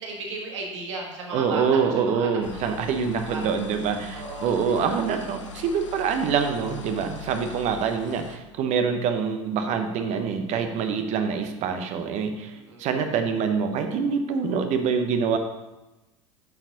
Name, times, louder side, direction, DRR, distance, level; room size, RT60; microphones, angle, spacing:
voice 1, 0.0-1.8 2.1-2.7 3.3-3.5 4.1-4.5 4.8-4.9 12.5-12.8, right 3 dB, 70° right, -1 dB, 1.8 m, -35 dB
voice 2, 1.3-15.4, right 6 dB, 50° right, 6 dB, 1.0 m, -25 dB
sound 1, 2.4-8.4, left 6 dB, 80° left, 0.8 m, -41 dB
8.8 x 6.1 x 4.0 m, 1.0 s
figure-of-eight pair, 75°, 16 cm